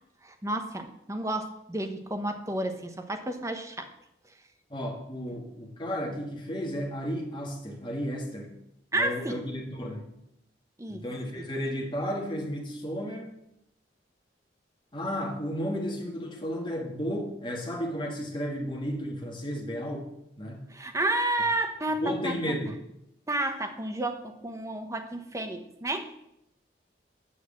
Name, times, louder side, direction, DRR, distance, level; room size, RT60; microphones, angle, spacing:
voice 1, 0.2-3.9 8.9-9.4 10.8-11.0 11.3-11.5 20.7-22.4 23.3-26.1, right 1 dB, 15° right, 6 dB, 1.0 m, -31 dB
voice 2, 4.7-8.6 8.9-10.0 10.9-13.3 14.9-20.1 20.4-20.7 22.0-22.7, equal, 25° left, 1 dB, 1.9 m, -33 dB
8.5 x 6.5 x 7.5 m, 0.81 s
head